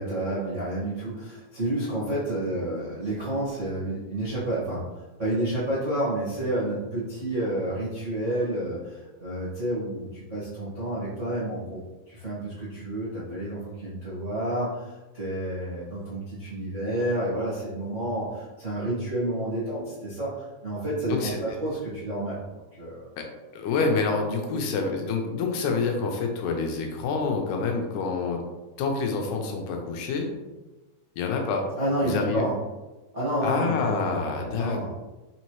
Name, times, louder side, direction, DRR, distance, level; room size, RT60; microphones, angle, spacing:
voice 1, 0.0-4.8 5.2-11.8 12.1-22.4 22.7-23.1 24.5-24.6 31.8-32.6 33.1-34.9, right 1 dB, 60° right, -10 dB, 0.7 m, -30 dB
voice 2, 21.1-21.4 23.2-23.3 23.5-28.4 28.8-30.3 31.2-31.7 32.0-32.4 33.4-35.0, left 4 dB, 80° left, 2 dB, 2.0 m, -27 dB
5.3 x 2.9 x 3.0 m, 1.1 s
omnidirectional pair, 3.6 m